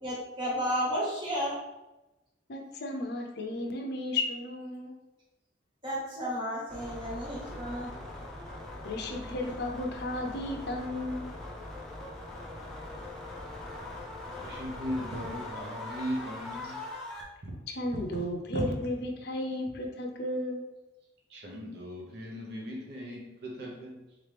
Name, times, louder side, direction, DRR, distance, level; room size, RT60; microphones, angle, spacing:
voice 1, 0.0-1.6 5.8-7.9, equal, 25° right, -6 dB, 1.3 m, -32 dB
voice 2, 2.5-4.9 8.8-11.3 17.8-20.6, left 1 dB, 60° left, 2 dB, 0.6 m, -34 dB
sound 1, 6.7-17.2, left 2 dB, 5° left, 0.6 m, -41 dB
voice 3, 14.4-17.6 17.9-18.2 18.5-18.9 21.3-24.3, equal, 60° right, -1 dB, 0.8 m, -38 dB
3.6 x 3.0 x 3.3 m, 1.0 s
head